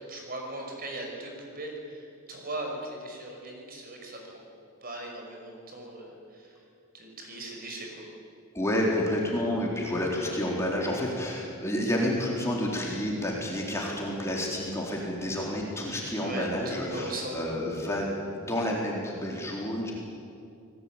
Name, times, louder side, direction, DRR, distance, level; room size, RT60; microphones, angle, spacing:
voice 1, 0.1-4.4 4.8-6.6 6.9-8.0 16.2-17.6, right 2 dB, 40° right, 1 dB, 5.8 m, -39 dB
voice 2, 8.5-19.9, left 1 dB, 15° left, -3 dB, 4.2 m, -30 dB
29.0 x 20.0 x 9.1 m, 2.5 s
head